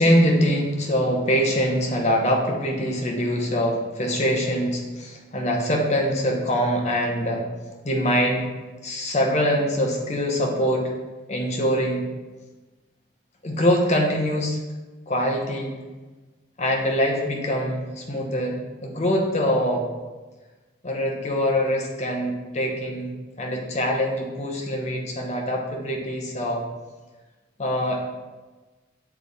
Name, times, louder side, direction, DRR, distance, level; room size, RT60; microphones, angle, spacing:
voice 1, 0.0-7.4 7.8-8.5 8.8-10.9 11.3-12.0 13.4-14.6 15.1-15.7 16.6-18.6 18.8-19.8 20.8-23.1 23.4-26.6 27.6-28.1, equal, 35° left, 0 dB, 0.8 m, -23 dB
6.9 x 3.5 x 4.0 m, 1.2 s
head